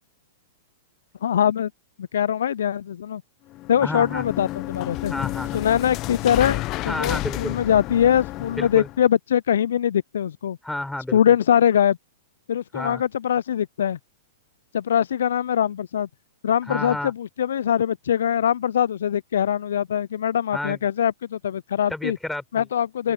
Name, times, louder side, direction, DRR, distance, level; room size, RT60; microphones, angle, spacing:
voice 1, 1.2-1.7 2.0-3.2 3.7-5.1 5.5-10.6 11.1-12.0 12.5-14.0 14.7-16.1 16.4-22.2 22.5-23.1, left 9 dB, 70° left, 0.4 m, -22 dB
sound 1, 3.5-9.0, left 18 dB, 35° left, 0.8 m, -31 dB
voice 2, 3.8-4.2 5.1-5.6 6.9-7.6 8.6-8.9 10.6-11.4 12.7-13.0 16.7-17.1 20.5-20.8 21.9-22.7, left 1 dB, 5° left, 4.8 m, -31 dB
open air
hypercardioid pair, 110°, 0 cm